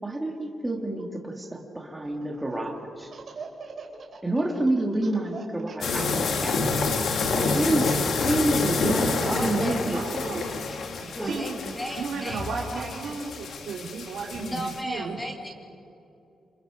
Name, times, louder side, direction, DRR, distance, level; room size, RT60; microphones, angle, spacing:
voice 1, 0.0-3.1 4.2-6.7 7.3-10.2 11.2-11.4, right 1 dB, 10° right, 1 dB, 2.4 m, -28 dB
Laughter, 2.0-2.6 3.0-7.2, right 5 dB, 45° right, 3.3 m, -42 dB
sound 1, 5.8-14.8, left 4 dB, 65° left, 1.8 m, -28 dB
voice 2, 9.3-10.0 11.1-13.2 14.4-15.5, equal, 10° left, 1 dB, 2.4 m, -35 dB
voice 3, 9.9-10.4 11.0-11.6 12.0-15.2, right 5 dB, 90° right, 0 dB, 2.5 m, -35 dB
27.5 x 27.0 x 5.2 m, 2.7 s
wide cardioid pair, 150°, 0 cm